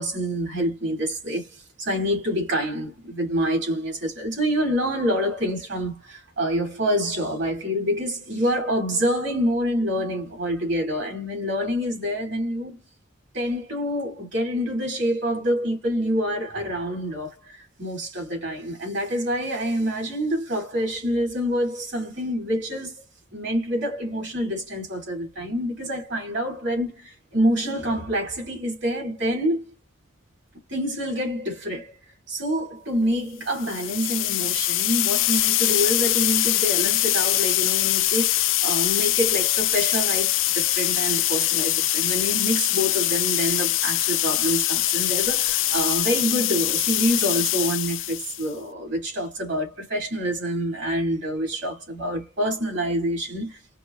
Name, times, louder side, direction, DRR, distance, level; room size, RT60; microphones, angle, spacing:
voice 1, 0.0-1.5 1.8-12.8 13.3-22.9 23.3-29.6 30.7-31.9 32.3-53.6, equal, 70° right, 3.3 m, -26 dB
sound 1, 33.5-48.5, left 15 dB, 85° left, 0.4 m, -23 dB
5.7 x 2.1 x 2.9 m
head